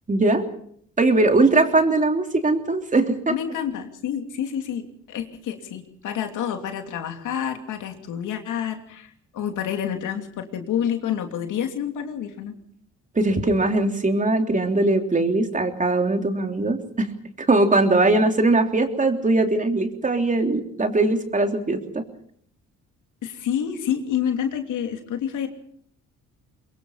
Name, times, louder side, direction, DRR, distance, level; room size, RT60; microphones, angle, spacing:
voice 1, 0.1-0.5 1.0-3.3 13.1-17.1 17.4-22.0, right 2 dB, 25° right, 5 dB, 3.3 m, -20 dB
voice 2, 3.3-12.5 23.2-25.5, left 9 dB, 80° left, 5 dB, 2.8 m, -28 dB
23.5 x 22.0 x 5.7 m, 0.65 s
cardioid pair, 90°, 30 cm